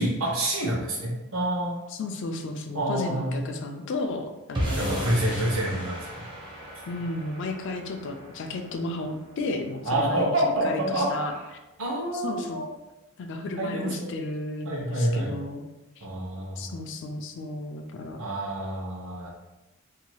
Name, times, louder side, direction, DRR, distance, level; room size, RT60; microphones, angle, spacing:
voice 1, 0.0-1.8 2.7-3.5 4.7-6.2 9.8-11.1 11.3-11.5 11.8-12.7 13.6-14.1 14.6-15.3 16.0-16.7 18.2-19.3, right 1 dB, 65° right, -3 dB, 0.8 m, -27 dB
voice 2, 1.9-5.4 6.9-11.4 12.1-12.6 13.2-15.6 16.0-16.1 16.6-18.2, left 2 dB, 55° left, 5 dB, 0.3 m, -33 dB
sound 1, 4.5-10.9, equal, 20° right, 0.5 m, -36 dB
2.7 x 2.2 x 3.0 m, 1.1 s
head